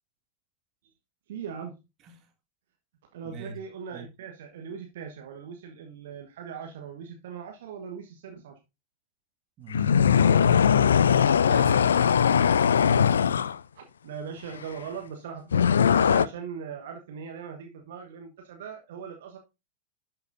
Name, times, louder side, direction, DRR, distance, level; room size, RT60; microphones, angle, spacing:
voice 1, 1.3-1.7 3.1-8.6 13.7-19.4, right 7 dB, 55° right, 1.1 m, -40 dB
voice 2, 3.2-3.6 3.9-4.1 9.6-11.9, equal, 35° right, 1.8 m, -43 dB
sound 1, 9.7-13.6 15.5-16.3, left 7 dB, 70° left, 0.3 m, -20 dB
11.5 x 6.0 x 2.6 m
figure-of-eight pair, 90°, 0 cm